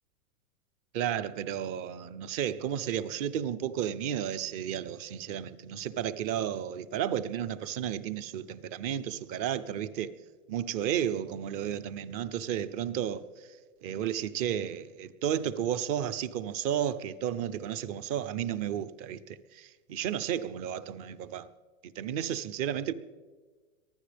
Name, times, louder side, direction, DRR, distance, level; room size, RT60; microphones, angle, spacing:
voice 1, 0.9-10.1 10.5-13.3 13.8-21.5 21.8-22.9, right 10 dB, 30° right, 0.5 m, -33 dB
23.5 x 15.0 x 3.4 m
hypercardioid pair, 135°, 44 cm